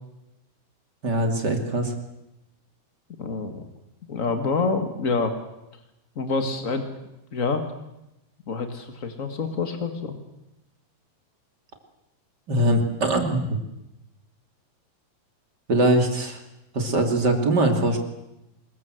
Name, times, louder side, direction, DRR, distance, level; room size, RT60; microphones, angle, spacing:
voice 1, 1.0-1.9 12.5-13.6 15.7-16.4 16.7-18.0, right 1 dB, 30° right, 5 dB, 2.8 m, -22 dB
voice 2, 3.2-3.7 4.1-5.3 6.1-6.8 7.3-7.6 8.5-10.1, left 4 dB, 65° left, 7 dB, 0.7 m, -27 dB
25.5 x 21.5 x 7.8 m, 0.93 s
omnidirectional pair, 4.6 m